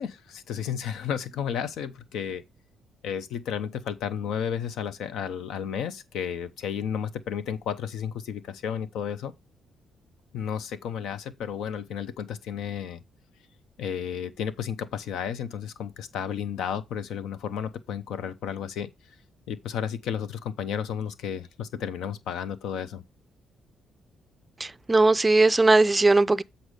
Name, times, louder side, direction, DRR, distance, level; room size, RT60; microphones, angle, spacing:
voice 1, 0.0-2.4 3.0-9.3 10.3-13.0 13.8-18.9 19.5-23.0, left 8 dB, 80° left, 0.7 m, -32 dB
voice 2, 24.6-26.4, right 2 dB, 20° right, 0.4 m, -19 dB
8.0 x 4.3 x 5.0 m
cardioid pair, 90°, 0 cm